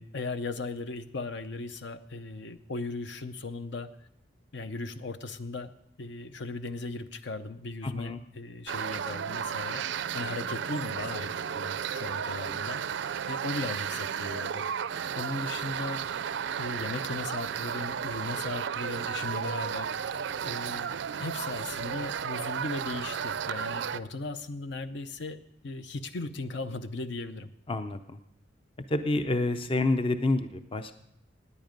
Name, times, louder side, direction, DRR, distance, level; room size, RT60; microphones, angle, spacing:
voice 1, 0.0-3.9 4.5-5.7 6.0-14.7 15.1-16.0 16.6-25.4 25.6-27.5, left 3 dB, 65° left, 11 dB, 0.7 m, -37 dB
voice 2, 7.8-8.2 27.7-28.0 28.9-31.0, left 2 dB, 30° left, 10 dB, 0.5 m, -28 dB
sound 1, 8.7-24.0, right 7 dB, 70° right, 0.4 m, -33 dB
16.5 x 9.9 x 5.2 m, 0.79 s
head